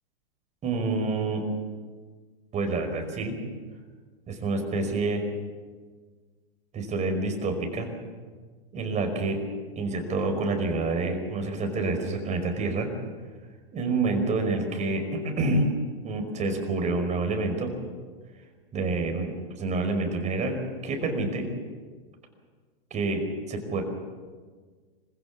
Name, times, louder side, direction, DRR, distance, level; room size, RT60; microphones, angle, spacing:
voice 1, 0.6-1.4 2.5-3.4 4.3-5.2 6.7-7.9 8.7-9.4 9.8-12.9 13.7-15.7 16.0-17.7 18.7-19.3 19.6-21.5 22.9-23.2 23.5-23.8, right 3 dB, 25° right, 4 dB, 5.2 m, -27 dB
26.0 x 15.5 x 7.4 m, 1.5 s
hypercardioid pair, 115°, 30 cm